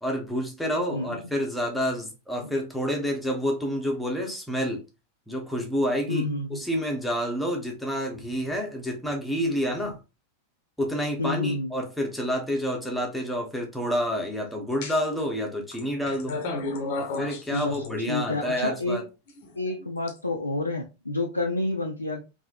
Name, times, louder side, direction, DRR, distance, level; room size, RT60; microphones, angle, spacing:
voice 1, 0.0-4.8 5.3-10.0 10.8-16.4 17.0-19.0, equal, 5° left, 1.0 m, -29 dB
voice 2, 6.1-6.6 11.2-11.7 17.5-19.0 19.6-22.2, left 2 dB, 85° left, 0.4 m, -29 dB
sound 1, 14.8-15.2 15.7-18.4 19.3-20.1, left 3 dB, 50° left, 0.7 m, -33 dB
3.6 x 2.7 x 2.5 m
figure-of-eight pair, 90°, 0 cm